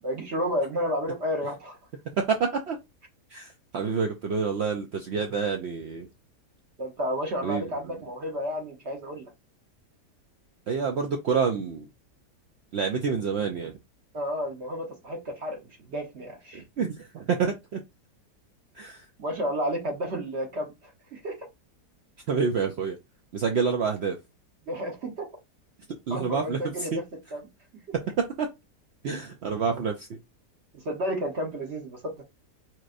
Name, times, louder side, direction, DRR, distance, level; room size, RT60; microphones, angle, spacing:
voice 1, 0.0-1.8 6.8-9.3 14.1-16.6 19.2-21.4 24.7-25.3 26.1-27.0 27.3-27.4 30.7-32.2, equal, 50° right, 1.1 m, -31 dB
voice 2, 2.2-2.8 3.3-6.1 7.4-7.6 10.7-11.9 12.7-13.7 16.5-17.8 18.8-19.0 22.3-23.0 23.3-24.2 26.1-27.0 27.9-28.5 29.0-30.2, right 5 dB, 85° right, 0.5 m, -28 dB
4.5 x 2.9 x 2.5 m
omnidirectional pair, 1.8 m